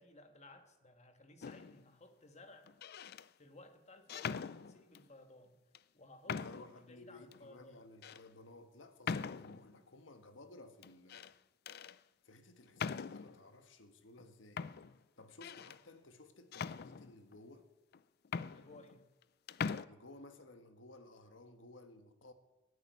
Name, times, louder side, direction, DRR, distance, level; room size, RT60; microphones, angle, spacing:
voice 1, 0.0-2.7 3.4-5.6 5.9-7.8 18.4-19.1, left 2 dB, 35° left, 1.6 m, -58 dB
sound 1, 1.4-1.9 2.7-3.3 4.1-5.1 5.7-5.8 6.3-6.8 7.3-7.4 8.0-8.2 9.0-9.7 10.8-11.3 11.7-12.0 12.8-13.4 14.2-14.3 14.6-15.8 16.5-17.4 17.9-18.0 18.2-19.2 19.5-19.9, left 6 dB, 55° left, 0.4 m, -42 dB
voice 2, 6.3-11.3 12.2-14.7 15.2-17.7 19.9-22.3, left 2 dB, 90° left, 1.5 m, -57 dB
15.5 x 8.5 x 9.5 m
head